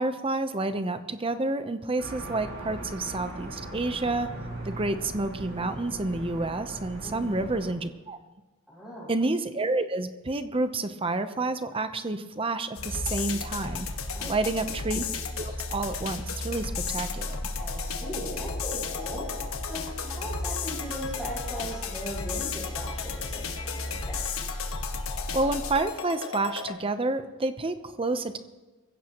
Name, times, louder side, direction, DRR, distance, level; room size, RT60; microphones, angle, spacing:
voice 1, 0.0-4.3 4.6-8.2 9.1-13.9 14.3-15.1 15.4-17.4 25.3-28.4, right 2 dB, 25° right, 10 dB, 0.8 m, -29 dB
sound 1, 2.0-7.7, right 1 dB, 55° right, 5.4 m, -39 dB
voice 2, 7.0-7.4 8.7-9.1 14.1-14.7 17.6-19.3 19.7-24.2, equal, 5° right, -5 dB, 6.3 m, -38 dB
sound 2, 12.8-26.7, left 4 dB, 70° left, 1.5 m, -33 dB
23.5 x 15.5 x 3.0 m, 1.2 s
head